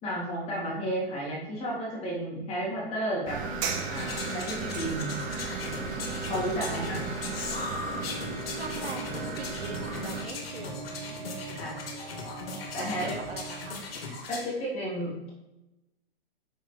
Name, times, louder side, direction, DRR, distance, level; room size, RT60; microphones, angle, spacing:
voice 1, 0.0-3.4 3.9-5.2 6.3-7.0 11.5-11.8 12.7-13.2 14.0-15.3, right 1 dB, 20° left, -5 dB, 3.2 m, -32 dB
sound 1, 3.3-10.2, right 4 dB, 25° right, 1.1 m, -35 dB
sound 2, 3.9-14.5, left 4 dB, 65° left, 2.1 m, -39 dB
voice 2, 6.6-7.8 8.5-11.2 12.8-13.8, right 3 dB, 80° right, 3 dB, 2.0 m, -42 dB
sound 3, 7.8-13.9, right 3 dB, 10° right, 2.0 m, -42 dB
6.5 x 6.2 x 5.4 m, 0.98 s
hypercardioid pair, 145°, 31 cm